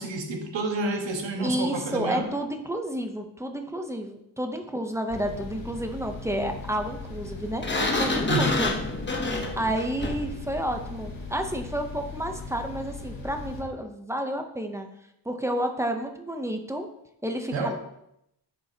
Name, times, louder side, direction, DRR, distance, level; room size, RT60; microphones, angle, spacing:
voice 1, 0.0-2.3 8.3-8.5 17.5-17.7, right 2 dB, 85° right, 1.3 m, -29 dB
voice 2, 1.4-8.7 9.6-14.9 15.3-16.9 17.2-17.7, right 1 dB, 5° right, 0.6 m, -30 dB
sound 1, 5.1-13.6, left 3 dB, 50° left, 1.8 m, -39 dB
Sliding door, 7.6-10.4, left 2 dB, 25° left, 0.9 m, -27 dB
10.0 x 6.6 x 2.7 m
wide cardioid pair, 175°, 44 cm